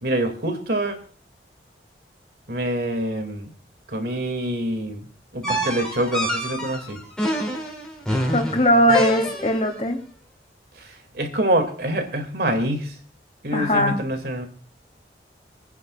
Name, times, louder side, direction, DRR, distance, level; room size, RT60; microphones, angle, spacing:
voice 1, 0.0-1.0 2.5-3.5 3.9-5.1 5.3-7.0 10.8-13.0 13.4-14.5, right 1 dB, 60° right, 6 dB, 2.3 m, -25 dB
sound 1, 5.4-9.7, equal, 5° left, 2.9 m, -27 dB
voice 2, 8.3-10.0 13.5-14.0, equal, 35° left, 3 dB, 2.8 m, -19 dB
28.5 x 9.8 x 2.4 m, 0.43 s
head